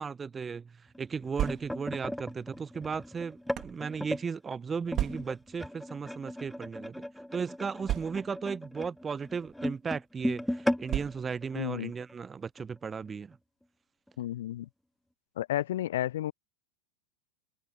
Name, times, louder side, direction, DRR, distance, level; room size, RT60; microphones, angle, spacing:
voice 1, 0.0-7.0 7.3-13.4, right 5 dB, 15° right, 1.1 m, -36 dB
sound 1, 0.9-4.3 4.9-12.2 12.6-12.8 13.1-13.3 14.1-14.2, left 1 dB, ahead, 0.5 m, -37 dB
sound 2, 1.1-2.0 2.8-3.8 4.9-5.5 6.4-6.6 6.8-6.9 7.8-8.5 9.4-9.6 10.9-11.5, right 13 dB, 30° right, 3.8 m, -35 dB
voice 2, 11.6-11.9 14.2-14.7 15.4-16.3, left 13 dB, 60° left, 0.6 m, -32 dB
figure-of-eight pair, 90°, 0 cm